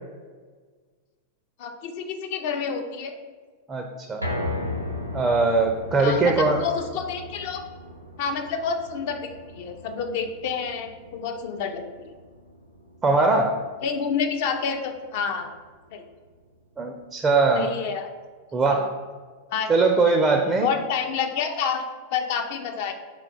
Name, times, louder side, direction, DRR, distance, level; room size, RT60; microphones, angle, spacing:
voice 1, 1.6-3.2 6.0-7.6 8.2-12.1 13.8-15.5 15.9-16.0 17.5-18.1 18.7-18.8 19.5-19.7 20.6-21.8 22.1-22.9, left 6 dB, 50° left, 5 dB, 0.4 m, -29 dB
voice 2, 3.7-4.3 5.1-6.7 13.0-13.6 16.8-17.7 18.5-18.9 19.7-20.7, right 3 dB, 15° right, 3 dB, 0.4 m, -21 dB
sound 1, 4.2-16.5 16.9-17.0 17.4-17.5, left 1 dB, 90° right, 0.5 m, -37 dB
3.8 x 2.3 x 4.5 m, 1.5 s
figure-of-eight pair, 90°, 0 cm